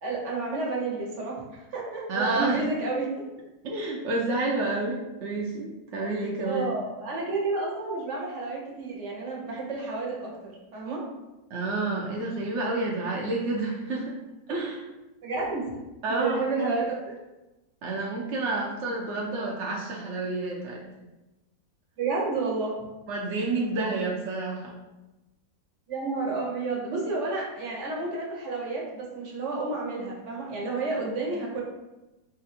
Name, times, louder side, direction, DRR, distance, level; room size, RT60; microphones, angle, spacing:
voice 1, 0.0-3.1 6.4-11.0 15.2-15.6 16.2-17.2 22.0-22.7 25.9-31.6, right 3 dB, 50° right, -2 dB, 1.1 m, -30 dB
voice 2, 2.1-2.7 3.6-6.7 11.5-14.2 14.5-14.9 16.0-16.4 17.8-20.8 23.1-24.8 26.9-27.0, right 2 dB, 65° right, -3 dB, 0.7 m, -29 dB
4.3 x 2.6 x 4.1 m, 1.0 s
omnidirectional pair, 2.0 m